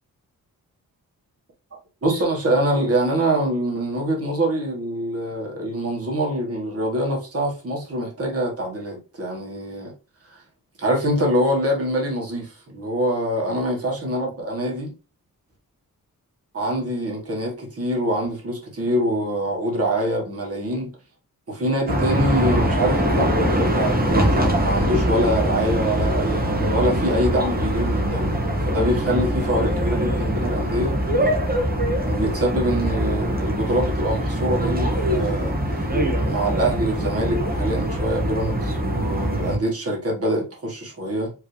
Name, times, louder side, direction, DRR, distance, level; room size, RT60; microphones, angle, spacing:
voice 1, 1.7-9.9 10.3-10.4 10.8-14.9 16.5-20.9 21.5-31.0 32.1-35.9 36.2-41.3, right 1 dB, 40° right, 1.6 m, -24 dB
sound 1, 21.9-39.6, right 1 dB, 25° right, 1.2 m, -23 dB
4.9 x 3.1 x 3.3 m
wide cardioid pair, 175°, 35 cm